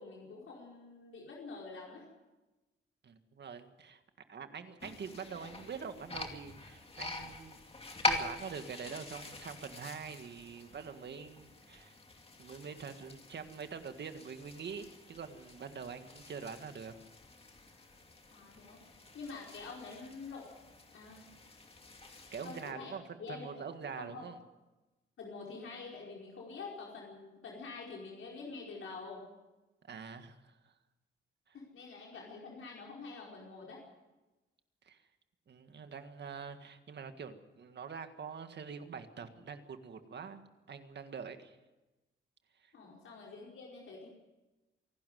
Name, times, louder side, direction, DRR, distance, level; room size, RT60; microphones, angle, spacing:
voice 1, 0.0-2.0 18.3-20.5 20.9-21.2 22.4-22.9 23.2-23.6 24.0-24.3 25.2-29.2 31.5-33.8 42.7-44.1, left 4 dB, 70° left, -3 dB, 4.9 m, -47 dB
voice 2, 3.0-4.0 4.3-7.6 8.0-12.0 12.4-16.9 22.3-24.4 29.8-30.6 31.5-31.6 34.9-35.0 35.5-40.4 40.7-41.6 42.6-42.7, right 6 dB, 55° right, 8 dB, 1.8 m, -45 dB
sound 1, 4.8-22.7, left 2 dB, 25° left, 2.5 m, -44 dB
25.5 x 12.0 x 9.3 m, 1.1 s
wide cardioid pair, 135°, 21 cm